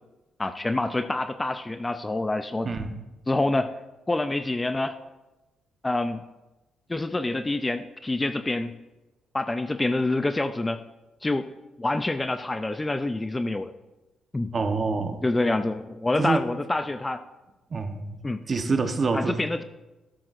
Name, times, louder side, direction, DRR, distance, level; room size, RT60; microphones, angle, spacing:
voice 1, 0.4-2.7 3.3-3.7 4.1-5.0 5.8-6.2 6.9-8.7 9.3-10.8 11.2-11.5 11.8-13.7 14.3-14.5 15.2-17.2 18.2-18.4 19.1-19.6, left 2 dB, 15° left, 10 dB, 0.5 m, -26 dB
voice 2, 2.6-3.0 14.5-15.2 16.2-16.4 17.7-19.4, right 4 dB, 40° right, 7 dB, 1.1 m, -27 dB
13.0 x 12.5 x 2.6 m, 1.1 s
cardioid pair, 90°, 0 cm